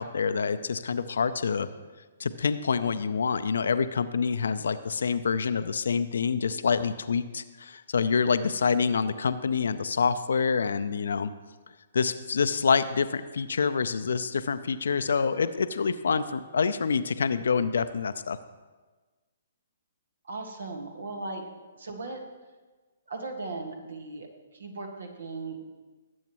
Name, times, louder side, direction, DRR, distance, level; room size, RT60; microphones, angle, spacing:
voice 1, 0.0-1.7 2.2-11.3 11.9-18.4, left 5 dB, 65° left, 12 dB, 0.6 m, -27 dB
voice 2, 20.2-21.4 21.7-22.2 23.1-25.6, right 3 dB, 65° right, 4 dB, 1.6 m, -37 dB
19.0 x 8.1 x 3.1 m, 1.3 s
figure-of-eight pair, 125°, 0 cm